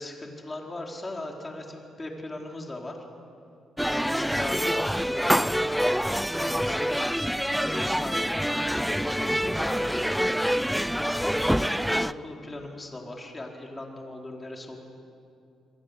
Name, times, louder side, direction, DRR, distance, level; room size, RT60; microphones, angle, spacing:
voice 1, 0.0-3.0 3.9-5.7 6.3-7.1 7.4-10.2 11.2-14.8, left 2 dB, 20° left, 1 dB, 4.6 m, -38 dB
sound 1, 3.8-12.1, equal, ahead, 0.5 m, -26 dB
28.0 x 21.5 x 8.4 m, 2.5 s
cardioid pair, 90°, 0 cm